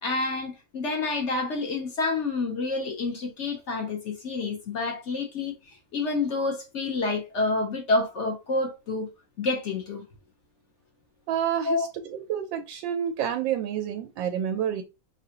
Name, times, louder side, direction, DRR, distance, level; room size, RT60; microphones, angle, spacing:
voice 1, 0.0-5.6 5.9-9.1 9.4-10.0 11.6-11.9, left 3 dB, 50° left, 0.9 m, -28 dB
voice 2, 11.3-14.8, right 9 dB, 85° right, 1.3 m, -29 dB
5.1 x 2.4 x 2.8 m
omnidirectional pair, 2.0 m